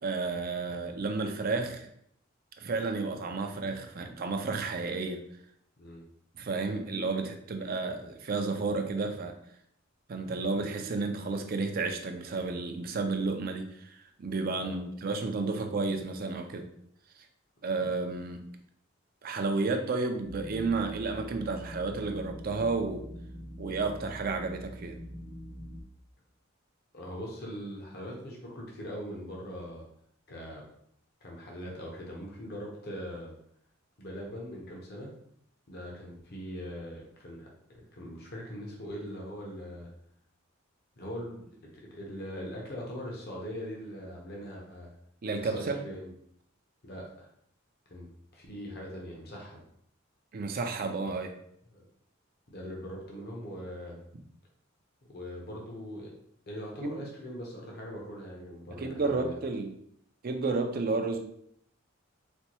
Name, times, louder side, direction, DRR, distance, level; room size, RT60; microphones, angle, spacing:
voice 1, 0.0-1.9 2.6-5.2 6.4-9.4 10.1-16.7 17.6-18.4 19.2-23.1 23.6-25.0 45.2-45.8 50.3-51.3 56.8-57.0 58.8-59.7 60.2-61.2, right 3 dB, 45° right, 5 dB, 0.4 m, -32 dB
sound 1, 20.2-25.8, equal, 15° left, 0.6 m, -44 dB
voice 2, 26.9-29.8 30.3-30.6 31.2-33.3 34.0-35.1 35.7-39.9 41.0-41.4 41.9-44.9 45.4-46.1 46.8-47.3 47.9-49.6 51.7-51.8 52.5-54.0 55.1-56.1 56.5-59.3, equal, 50° left, -1 dB, 0.7 m, -41 dB
4.2 x 2.2 x 2.9 m, 0.69 s
head